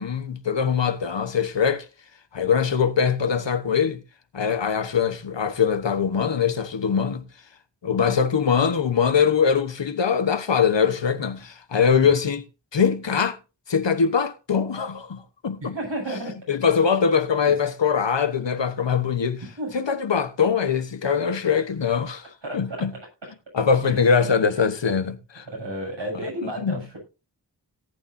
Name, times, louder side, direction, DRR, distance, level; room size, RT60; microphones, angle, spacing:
voice 1, 0.0-1.9 2.3-4.0 4.3-7.2 7.8-12.4 12.7-13.4 13.7-15.8 16.5-19.4 19.7-22.9 23.5-25.4 26.6-26.8, left 6 dB, 85° left, 1.2 m, -22 dB
voice 2, 15.6-16.3 19.6-19.7 22.4-22.8 23.8-24.0 25.5-27.0, right 1 dB, 80° right, 7.5 m, -31 dB
18.0 x 8.8 x 2.7 m
wide cardioid pair, 55°, 43 cm